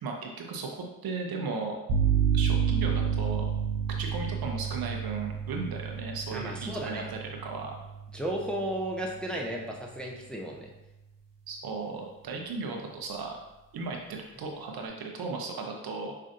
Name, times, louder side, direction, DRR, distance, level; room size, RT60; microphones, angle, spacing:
voice 1, 0.0-0.7 1.0-1.8 2.3-3.5 4.0-7.7 11.5-13.4 13.7-16.1, right 4 dB, 55° right, 2 dB, 0.8 m, -36 dB
sound 1, 1.9-9.6, right 7 dB, 85° right, 0.9 m, -30 dB
voice 2, 6.3-7.1 8.1-10.7, right 1 dB, ahead, -1 dB, 0.7 m, -34 dB
5.4 x 2.4 x 2.5 m, 0.98 s
hypercardioid pair, 40°, 45 cm